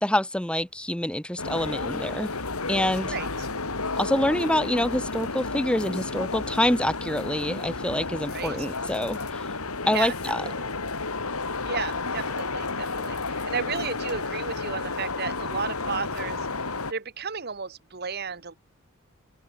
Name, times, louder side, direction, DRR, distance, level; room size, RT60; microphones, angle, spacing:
voice 1, 0.0-2.3 2.7-3.2 4.0-9.5 9.9-10.4, left 1 dB, 5° left, 0.8 m, -26 dB
sagrada familia cathedral in the middel, 1.4-16.9, left 3 dB, 90° left, 3.2 m, -32 dB
voice 2, 8.3-8.9 9.9-10.1 10.4-10.7 11.6-16.4 16.9-18.6, right 5 dB, 45° right, 1.3 m, -33 dB
open air
head